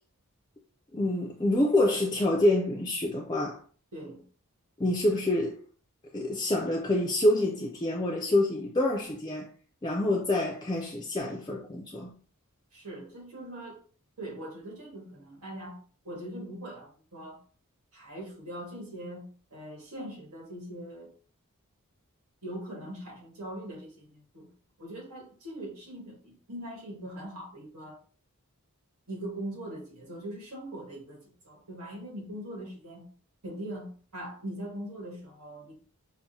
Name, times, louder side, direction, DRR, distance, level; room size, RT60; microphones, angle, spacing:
voice 1, 0.9-3.6 4.8-5.6 6.1-9.5 9.8-12.1, left 1 dB, 20° left, 0.4 m, -27 dB
voice 2, 3.9-4.2 12.7-13.8 14.2-15.8 16.0-17.4 17.9-21.1 22.4-24.5 24.8-28.0 29.1-33.1 33.4-35.8, right 1 dB, 80° right, 1.5 m, -41 dB
5.8 x 2.1 x 2.7 m
head